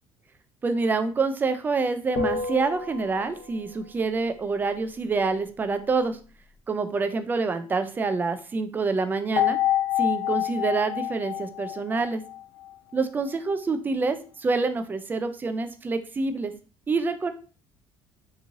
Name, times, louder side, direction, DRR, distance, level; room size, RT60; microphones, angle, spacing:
voice 1, 0.6-6.2 6.7-9.6 10.0-12.2 12.9-16.5 16.9-17.3, right 4 dB, 20° right, 9 dB, 0.3 m, -27 dB
sound 1, 2.1-3.7 9.4-12.7, left 10 dB, 70° left, 0.8 m, -28 dB
3.6 x 3.0 x 2.5 m, 0.37 s
cardioid pair, 150°, 10 cm